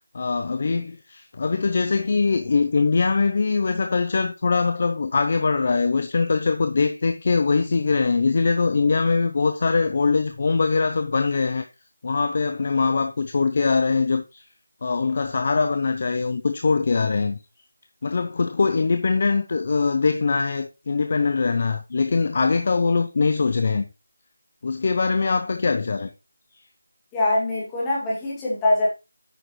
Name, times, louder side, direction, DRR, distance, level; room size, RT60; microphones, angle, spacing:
voice 1, 0.1-11.7 12.0-14.4 14.8-17.4 18.0-23.8 24.6-26.1, left 4 dB, 35° left, 0.6 m, -22 dB
voice 2, 27.1-28.9, left 2 dB, 10° left, 2.4 m, -23 dB
9.2 x 6.3 x 3.2 m
figure-of-eight pair, 175°, 0 cm